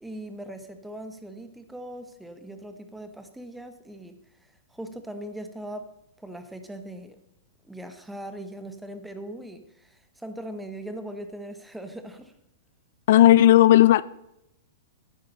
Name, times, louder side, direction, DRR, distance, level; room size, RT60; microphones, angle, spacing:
voice 1, 0.0-5.9 6.2-7.2 7.6-12.3, right 1 dB, 5° right, 0.9 m, -40 dB
voice 2, 13.1-14.0, left 13 dB, 60° left, 0.3 m, -14 dB
10.0 x 9.4 x 5.3 m
hypercardioid pair, 155°, 0 cm